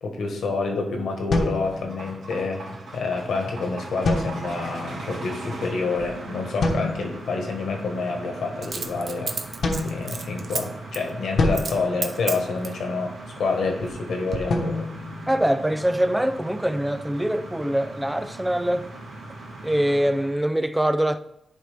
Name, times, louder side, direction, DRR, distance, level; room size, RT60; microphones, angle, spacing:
voice 1, 0.0-2.7 2.9-9.4 9.8-14.9, left 3 dB, 90° left, 1.4 m, -28 dB
sound 1, 1.0-20.4, right 2 dB, 90° right, 3.2 m, -39 dB
sound 2, 1.3-2.4 4.0-4.9 6.6-7.3 9.6-10.7 11.4-12.8 14.5-16.0, left 2 dB, 65° left, 1.1 m, -28 dB
Coin (dropping), 6.0-6.1 8.6-10.6 10.9-11.1 11.5-11.8 12.0-12.8 13.4-14.0 14.3-14.4, right 4 dB, 50° right, 0.7 m, -31 dB
voice 2, 15.3-18.9 19.6-21.2, right 1 dB, 5° right, 0.4 m, -23 dB
10.5 x 5.0 x 3.4 m
wide cardioid pair, 140°, 0 cm